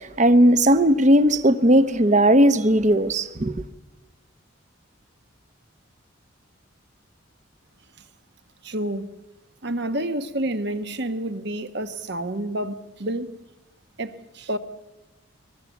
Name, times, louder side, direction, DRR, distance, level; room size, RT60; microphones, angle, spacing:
voice 1, 0.0-3.5, right 1 dB, 35° right, 0.9 m, -17 dB
voice 2, 8.6-9.1 9.6-13.3 14.0-14.6, right 1 dB, 55° right, 1.1 m, -29 dB
22.5 x 21.5 x 7.2 m
head